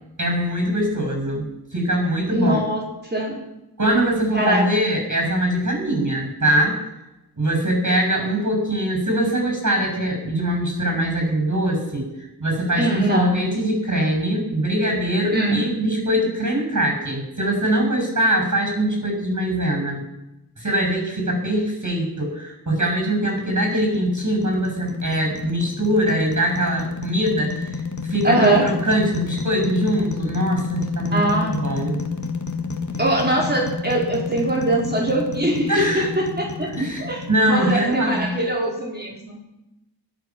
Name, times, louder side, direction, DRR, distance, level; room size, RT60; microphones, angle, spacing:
voice 1, 0.2-2.6 3.8-6.8 7.4-20.0 20.6-32.0 35.7-36.1 36.7-38.3, right 1 dB, 45° right, 1 dB, 6.5 m, -22 dB
voice 2, 2.3-2.8 3.1-3.4 4.3-4.6 12.8-13.4 15.3-15.6 28.2-28.7 31.1-31.6 33.0-36.7 37.0-37.2 37.5-39.4, right 1 dB, 25° right, -2 dB, 4.2 m, -22 dB
sound 1, 23.5-38.7, left 5 dB, 45° left, 2.1 m, -31 dB
23.0 x 8.5 x 6.0 m, 0.91 s
wide cardioid pair, 80°, 40 cm